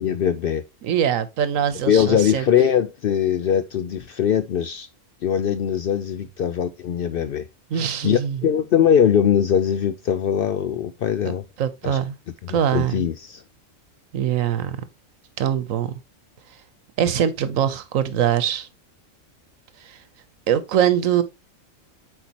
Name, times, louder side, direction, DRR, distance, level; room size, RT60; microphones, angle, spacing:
voice 1, 0.0-0.6 1.8-4.9 5.2-7.5 7.7-11.4 11.8-12.0 12.5-13.4, left 8 dB, 65° left, 0.5 m, -21 dB
voice 2, 0.8-2.5 7.7-8.4 11.6-12.2 12.5-13.0 14.1-14.8 15.4-15.9 17.0-18.7 19.8-20.0 20.5-21.2, right 9 dB, 90° right, 1.2 m, -22 dB
8.1 x 4.5 x 2.9 m
omnidirectional pair, 1.3 m